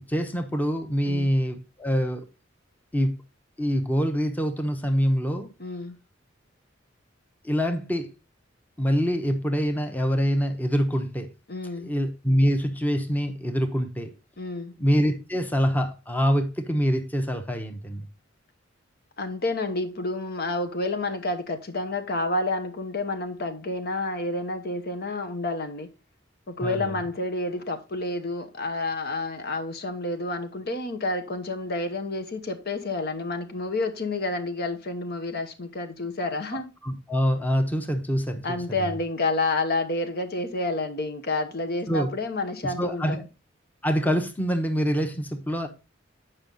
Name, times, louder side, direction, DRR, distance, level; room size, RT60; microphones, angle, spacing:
voice 1, 0.0-2.2 2.9-3.1 3.6-5.5 7.4-8.1 8.8-11.3 11.8-14.1 14.8-18.1 26.6-27.0 36.8-38.9 41.9-42.1 42.6-43.2 43.8-45.7, equal, 10° left, 0.9 m, -25 dB
voice 2, 5.6-6.0 11.5-11.9 14.4-14.7 19.2-25.9 26.5-36.7 38.4-43.2, left 2 dB, 55° left, 1.0 m, -29 dB
8.9 x 5.6 x 3.8 m
head